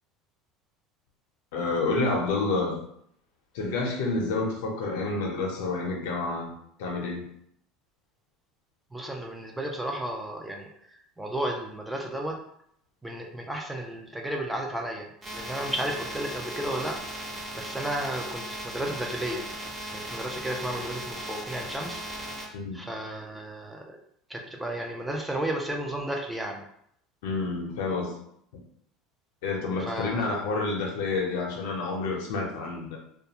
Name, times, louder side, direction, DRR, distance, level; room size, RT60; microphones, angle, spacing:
voice 1, 1.5-2.8 3.5-6.5 6.8-7.3 22.5-22.8 27.2-28.1 29.4-33.0, left 3 dB, 85° left, 0 dB, 0.6 m, -29 dB
voice 2, 8.9-12.4 13.0-15.1 15.3-17.0 17.6-19.4 19.9-22.0 22.7-24.0 24.3-26.6 29.8-30.3, right 1 dB, 5° right, 1 dB, 0.4 m, -33 dB
sound 1, 15.2-22.5, right 1 dB, 30° right, 0.8 m, -37 dB
2.3 x 2.2 x 2.8 m, 0.69 s
supercardioid pair, 120°, 0 cm